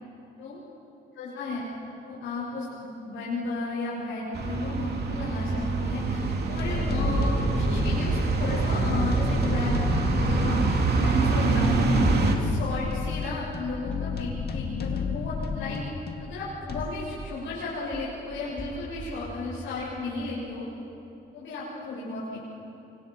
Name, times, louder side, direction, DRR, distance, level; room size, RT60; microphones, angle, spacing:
voice 1, 1.2-1.6 2.0-11.9 12.3-15.8 16.2-20.7 21.3-22.5, left 3 dB, 80° left, -8 dB, 7.1 m, -34 dB
sound 1, 4.3-12.4, right 3 dB, 55° right, 3.0 m, -25 dB
sound 2, 5.6-5.7 6.6-16.8, left 5 dB, 55° left, 2.0 m, -32 dB
sound 3, 13.2-17.7 17.9-20.4, equal, 5° left, 3.8 m, -42 dB
29.0 x 25.0 x 5.4 m, 2.8 s
cardioid pair, 90°, 20 cm